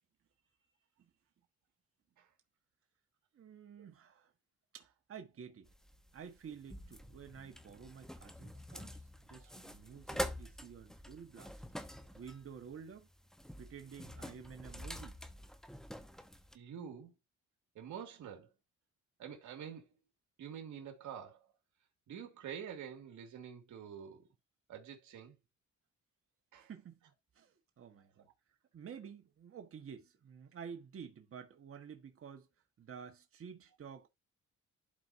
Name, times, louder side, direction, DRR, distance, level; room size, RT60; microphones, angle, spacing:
voice 1, 3.3-4.3 4.7-5.7 6.1-11.5 12.1-13.1 13.6-15.2 26.7-27.0 27.3-28.3 28.7-32.5 32.8-34.1, right 7 dB, 45° right, 1.4 m, -51 dB
sound 1, 5.7-16.6, equal, ahead, 0.8 m, -46 dB
voice 2, 16.5-17.1 17.7-18.5 19.2-20.0 20.4-21.5 22.1-24.3 24.7-25.4 26.5-26.7, right 8 dB, 75° right, 2.2 m, -47 dB
12.0 x 4.4 x 2.7 m
cardioid pair, 90°, 30 cm